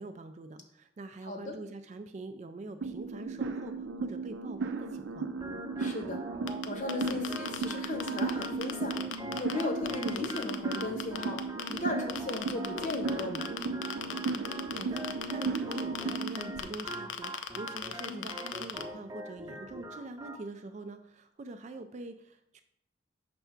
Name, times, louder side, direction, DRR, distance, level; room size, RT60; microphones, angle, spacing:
voice 1, 0.0-5.3 14.5-22.6, right 2 dB, 40° right, 8 dB, 0.3 m, -44 dB
voice 2, 1.2-1.5 5.8-6.2 6.6-9.0 9.4-11.4 11.7-13.5 18.1-18.3, left 2 dB, 40° left, 4 dB, 0.8 m, -36 dB
sound 1, 2.8-16.6, right 4 dB, 85° right, 0.5 m, -36 dB
Organ, 5.4-20.4, equal, 20° right, 0.8 m, -43 dB
sound 2, 6.5-9.6 9.9-11.8 12.1-18.8, left 9 dB, 85° left, 0.5 m, -36 dB
5.5 x 3.4 x 5.7 m, 0.75 s
head